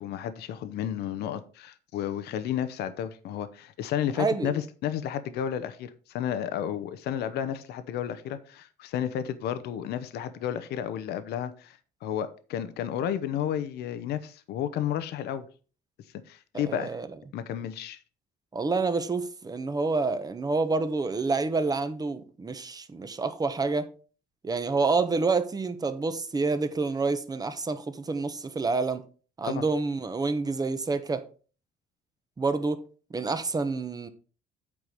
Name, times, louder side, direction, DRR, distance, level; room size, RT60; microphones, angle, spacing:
voice 1, 0.0-15.5 16.3-17.0 17.3-18.0 29.4-29.6, left 10 dB, 75° left, 0.8 m, -32 dB
voice 2, 4.2-4.5 16.5-17.1 18.5-23.9 24.4-29.0 29.4-31.2 32.4-32.8 33.1-34.1, right 3 dB, 20° right, 1.0 m, -28 dB
8.6 x 4.7 x 5.1 m
cardioid pair, 110°, 17 cm